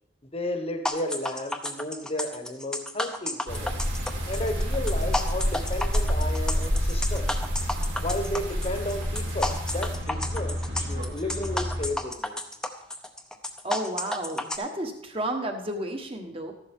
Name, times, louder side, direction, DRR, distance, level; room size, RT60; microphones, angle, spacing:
voice 1, 0.3-3.7 4.3-7.3 8.0-10.6 10.9-12.4, left 1 dB, 30° left, 6 dB, 1.1 m, -33 dB
sound 1, 0.8-14.6, left 1 dB, 5° left, 0.7 m, -32 dB
sound 2, 3.5-11.9, equal, 60° right, 2.6 m, -32 dB
sound 3, 3.5-10.0, equal, 90° right, 3.7 m, -30 dB
voice 2, 13.6-16.5, right 1 dB, 30° right, 4 dB, 1.3 m, -32 dB
14.0 x 11.5 x 3.6 m, 0.79 s
head